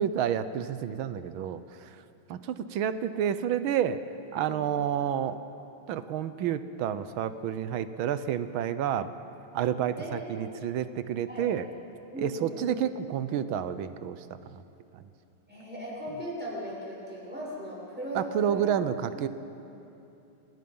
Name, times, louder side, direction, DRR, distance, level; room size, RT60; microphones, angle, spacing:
voice 1, 0.0-2.0 2.3-4.0 4.3-5.4 5.9-9.1 9.5-11.7 12.2-14.6 18.1-19.3, right 9 dB, 75° right, 12 dB, 1.6 m, -30 dB
voice 2, 9.9-10.5 11.3-11.5 12.1-12.7 15.5-19.3, equal, 5° right, -6 dB, 6.6 m, -38 dB
27.0 x 19.0 x 5.5 m, 2.8 s
omnidirectional pair, 2.4 m